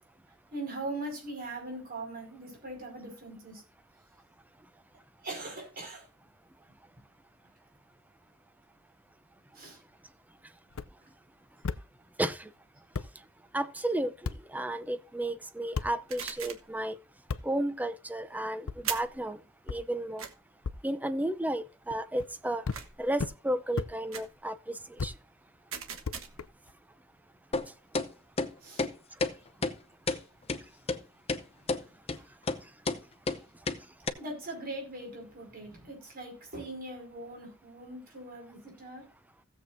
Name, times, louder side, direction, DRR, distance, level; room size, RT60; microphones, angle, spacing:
voice 1, 0.5-3.6 5.2-6.1 9.5-9.8 28.6-28.9 30.1-30.2 31.7-31.9 33.3-33.4 34.2-39.0, right 2 dB, 45° right, 5.3 m, -41 dB
sound 1, 10.7-10.9 11.6-11.8 12.6-12.7 12.9-13.1 14.2-14.4 15.7-15.9 17.3-17.4 18.7-18.8 19.7-19.8 20.6-20.8 21.9-22.3 22.6-22.8 23.2-23.3 23.8-23.9 25.0-25.1 26.0-26.7, left 4 dB, 85° left, 0.6 m, -34 dB
voice 2, 12.2-12.5 13.5-17.0 17.4-19.4 19.7-20.3 20.8-22.7 23.0-25.1, right 1 dB, 10° right, 0.6 m, -33 dB
sound 2, 16.1-16.7 18.8-19.2 20.2-20.3 22.7-23.1 24.1-24.4 25.7-26.5, right 8 dB, 80° right, 1.3 m, -39 dB
sound 3, 27.5-27.7 27.9-28.1 28.4-28.5 28.8-28.9 29.2-29.3 29.6-29.7 30.1-30.2 30.5-30.6 30.9-31.0 31.3-31.4 31.7-31.8 32.1-32.2 32.5-32.6 32.8-33.0 33.3-33.4 33.7-33.8 34.1-34.2, left 3 dB, 30° left, 0.7 m, -30 dB
16.5 x 7.6 x 2.6 m
head